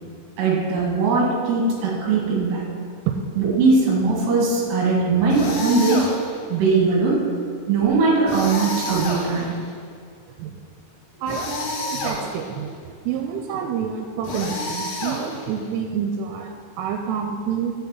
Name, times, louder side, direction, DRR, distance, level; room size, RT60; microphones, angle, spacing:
voice 1, 0.4-2.7 3.4-6.1 6.5-7.2 7.7-9.5, right 4 dB, 65° right, -3 dB, 3.8 m, -20 dB
sound 1, 5.3-6.5 8.3-9.7 11.3-12.6 14.2-15.7, left 2 dB, 85° left, 3.8 m, -29 dB
voice 2, 11.2-17.7, right 7 dB, 90° right, 3 dB, 3.1 m, -28 dB
7.5 x 7.2 x 7.5 m, 2.2 s
omnidirectional pair, 5.7 m